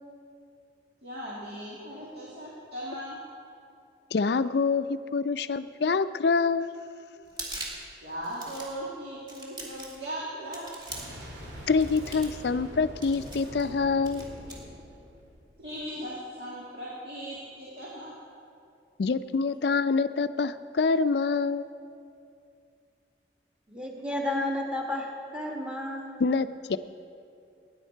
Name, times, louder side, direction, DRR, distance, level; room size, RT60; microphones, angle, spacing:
voice 1, 1.0-3.2 8.0-10.7 15.6-18.1, equal, 60° right, -7 dB, 2.3 m, -38 dB
voice 2, 4.1-6.7 11.7-14.2 19.0-21.7 26.2-26.8, left 4 dB, 65° left, 13 dB, 0.4 m, -26 dB
sound 1, 7.2-7.9 8.2-8.8 9.3-10.0 10.5-11.2 11.8-12.4 13.0-13.7 14.0-14.6, right 2 dB, 25° right, 2.2 m, -41 dB
Boom, 10.9-15.8, equal, 80° right, 2.7 m, -43 dB
voice 3, 23.7-26.2, left 1 dB, 5° right, -1 dB, 1.6 m, -32 dB
19.0 x 10.0 x 4.5 m, 2.5 s
head